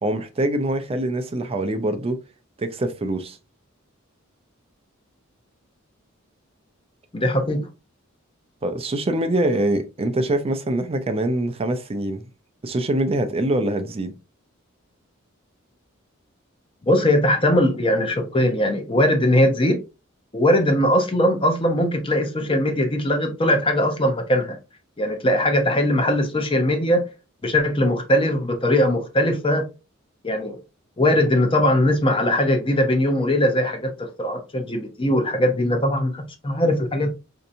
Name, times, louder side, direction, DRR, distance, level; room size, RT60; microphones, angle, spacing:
voice 1, 0.0-2.2 2.6-3.4 8.6-12.2 12.6-14.2, right 1 dB, 30° right, 0.4 m, -24 dB
voice 2, 7.1-7.7 16.9-19.8 20.3-24.6 25.0-27.0 27.4-29.6 30.2-30.6 31.0-37.1, left 1 dB, 25° left, 0.7 m, -20 dB
4.4 x 2.7 x 2.6 m
head